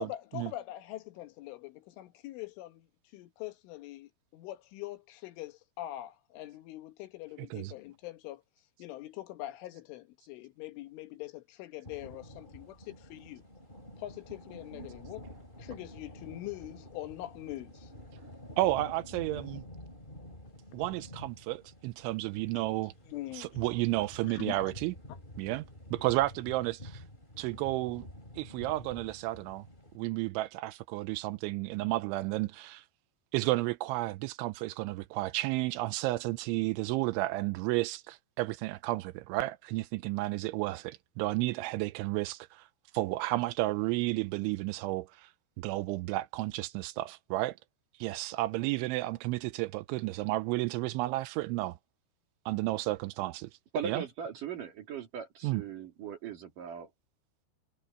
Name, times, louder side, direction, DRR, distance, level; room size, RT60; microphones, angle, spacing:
voice 1, 0.0-2.9 3.1-8.4 8.8-13.4 14.0-15.3 15.6-17.9 22.6-22.7 23.1-23.5 24.2-24.7 25.1-25.2, left 15 dB, 80° left, 3.8 m, -43 dB
sound 1, 11.8-30.0, left 1 dB, 10° left, 5.2 m, -49 dB
voice 2, 18.6-19.7 20.7-22.9 23.3-24.9 25.4-25.7 25.9-27.0 27.4-28.1 28.4-29.6 30.0-32.8 33.3-42.7 42.9-45.3 45.6-47.6 48.0-51.8 52.5-53.5 53.8-54.0 55.4-55.6, right 18 dB, 85° right, 2.9 m, -32 dB
voice 3, 53.7-56.9, right 7 dB, 50° right, 3.3 m, -38 dB
omnidirectional pair, 5.6 m